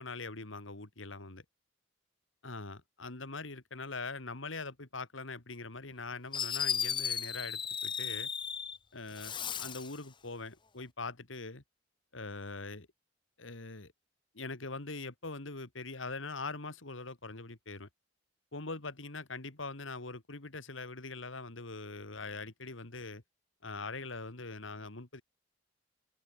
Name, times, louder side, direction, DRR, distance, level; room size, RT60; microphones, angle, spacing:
voice 1, 0.0-1.4 2.4-8.3 8.9-11.6 12.1-12.9 13.4-13.9 14.3-17.9 18.5-23.2 23.6-25.2, left 3 dB, 85° left, 2.5 m, -42 dB
Fireworks, 5.9-6.0 6.3-8.8 9.1-10.0, left 7 dB, 25° left, 0.9 m, -35 dB
head